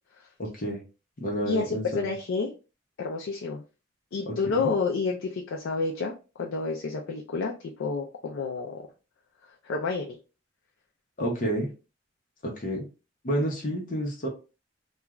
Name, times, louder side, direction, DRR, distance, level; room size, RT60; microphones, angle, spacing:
voice 1, 0.4-0.8 1.2-2.1 4.2-4.7 11.2-11.7 12.4-12.9 13.2-14.3, equal, 45° left, -1 dB, 0.8 m, -30 dB
voice 2, 1.4-2.5 3.0-3.6 4.1-8.8 9.6-10.2, left 4 dB, 85° left, 0 dB, 0.4 m, -29 dB
2.4 x 2.3 x 2.9 m, 0.32 s
head